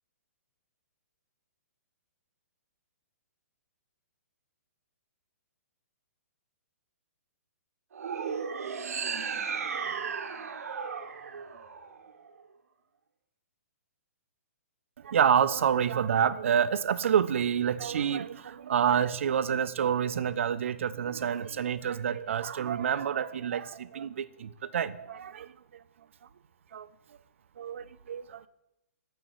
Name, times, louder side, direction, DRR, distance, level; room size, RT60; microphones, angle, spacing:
sound 1, 7.9-12.3, right 6 dB, 70° right, 0.7 m, -35 dB
voice 1, 15.0-25.5 26.7-26.9 27.6-28.5, right 8 dB, 55° right, 15 dB, 0.3 m, -28 dB
8.7 x 5.0 x 3.8 m, 0.91 s
hypercardioid pair, 175°, 8 cm